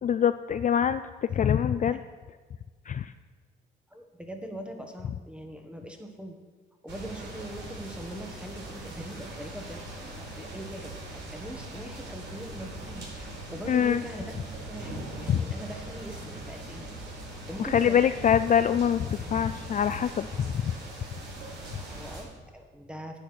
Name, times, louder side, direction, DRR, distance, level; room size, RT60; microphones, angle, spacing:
voice 1, 0.0-2.0 2.9-3.1 13.7-14.0 15.3-15.4 17.6-20.7, left 8 dB, 40° left, 11 dB, 0.4 m, -24 dB
voice 2, 3.9-6.4 6.8-16.9 17.3-18.3 21.8-23.2, equal, 5° right, 3 dB, 1.7 m, -42 dB
sound 1, 6.9-22.2, right 1 dB, 65° right, 4.2 m, -41 dB
10.0 x 8.6 x 6.1 m, 1.4 s
cardioid pair, 90°, 20 cm